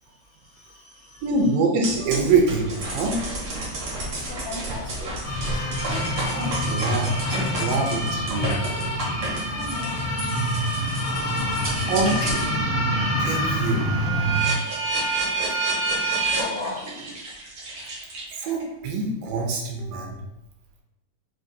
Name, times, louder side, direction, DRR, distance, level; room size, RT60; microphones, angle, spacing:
voice 1, 0.0-1.3 3.1-5.2 5.8-8.0 8.5-8.6 9.2-11.9 14.2-15.0 15.5-17.2, left 2 dB, 80° left, -6 dB, 1.5 m, -41 dB
voice 2, 1.2-3.2 6.3-8.6 11.9-12.5 13.2-13.9 18.3-20.2, right 3 dB, 80° right, 0 dB, 2.2 m, -25 dB
sound 1, 1.8-12.5 13.0-18.6, right 3 dB, 65° right, 1.3 m, -30 dB
sound 2, 5.2-14.4, equal, 60° left, 1.3 m, -26 dB
5.7 x 2.7 x 2.6 m, 0.93 s
omnidirectional pair, 4.0 m